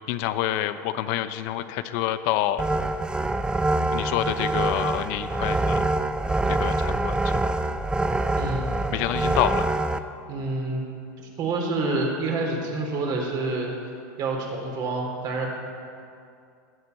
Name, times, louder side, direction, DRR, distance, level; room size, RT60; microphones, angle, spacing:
voice 1, 0.1-2.6 3.9-5.8 6.5-7.3 8.9-9.7, left 13 dB, 60° left, 11 dB, 0.8 m, -27 dB
sound 1, 2.6-10.0, right 2 dB, 10° right, 0.6 m, -25 dB
voice 2, 8.3-8.7 10.3-10.8 11.4-13.7 14.2-15.5, right 3 dB, 45° right, 0 dB, 4.0 m, -27 dB
18.5 x 8.9 x 6.9 m, 2.4 s
supercardioid pair, 120°, 10 cm